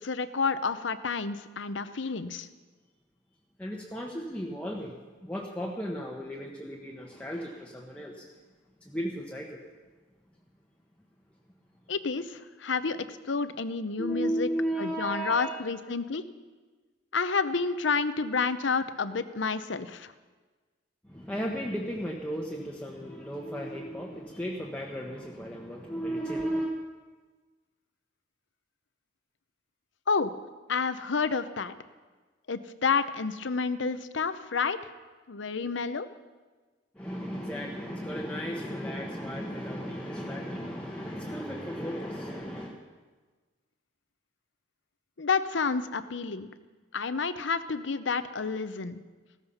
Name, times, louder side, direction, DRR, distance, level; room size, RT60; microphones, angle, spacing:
voice 1, 0.0-2.5 11.9-14.5 14.8-16.3 17.1-20.1 30.1-30.3 30.7-31.7 32.5-34.8 35.3-36.1 45.2-46.5 46.9-49.0, left 4 dB, 75° left, 12 dB, 0.8 m, -29 dB
voice 2, 3.6-8.3 8.8-9.6 14.0-15.6 21.0-26.7 36.9-42.8, equal, 5° left, -2 dB, 1.2 m, -35 dB
16.0 x 14.0 x 5.6 m, 1.3 s
head